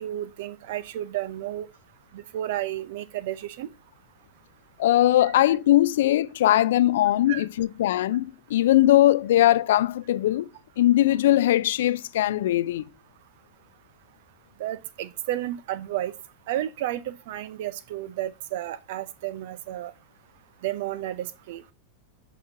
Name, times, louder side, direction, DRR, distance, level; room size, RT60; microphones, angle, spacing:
voice 1, 0.0-1.7 2.1-3.7 5.2-5.3 7.3-7.4 14.6-16.1 16.5-19.9 20.6-21.6, right 13 dB, 55° right, 0.5 m, -32 dB
voice 2, 4.8-8.3 8.5-10.5 10.8-12.8, left 14 dB, 60° left, 0.4 m, -20 dB
10.5 x 3.6 x 2.7 m
figure-of-eight pair, 90°, 0 cm